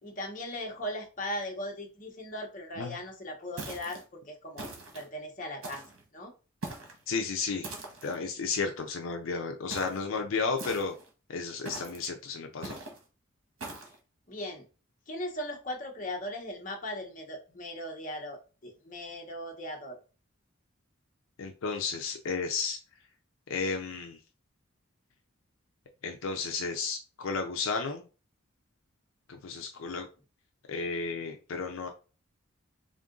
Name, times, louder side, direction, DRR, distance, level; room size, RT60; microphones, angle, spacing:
voice 1, 0.0-4.7 4.9-5.8 6.1-6.3 14.3-14.6 15.1-20.0, left 1 dB, 40° left, 1 dB, 0.9 m, -38 dB
sound 1, 3.6-4.0 4.6-5.1 5.6-6.0 6.6-7.0 7.6-8.2 9.7-10.0 10.6-11.1 11.6-12.1 12.6-13.0 13.6-13.9, right 2 dB, 80° right, 1.3 m, -41 dB
voice 2, 7.1-7.7 8.0-10.9 11.3-12.8 21.4-22.8 23.5-24.2 26.0-28.0 29.3-30.1 30.7-31.9, left 4 dB, 75° left, 4 dB, 0.5 m, -33 dB
3.6 x 2.5 x 3.7 m, 0.34 s
head